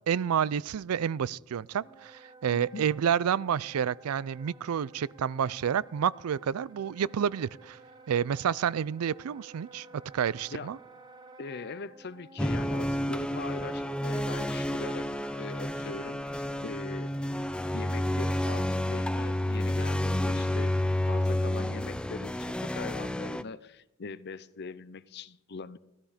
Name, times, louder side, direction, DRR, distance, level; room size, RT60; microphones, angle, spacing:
voice 1, 0.1-7.8 8.1-9.9 10.1-10.8, right 8 dB, 85° right, 0.4 m, -29 dB
Wind instrument woodwind instrument, 1.7-17.2, right 3 dB, 20° right, 1.2 m, -53 dB
voice 2, 2.5-2.8 10.5-10.7 11.4-17.1 17.7-20.8 21.0-25.8, left 4 dB, 50° left, 0.6 m, -42 dB
sound 1, 12.4-23.4, left 1 dB, 5° left, 0.4 m, -30 dB
16.0 x 12.5 x 5.0 m
head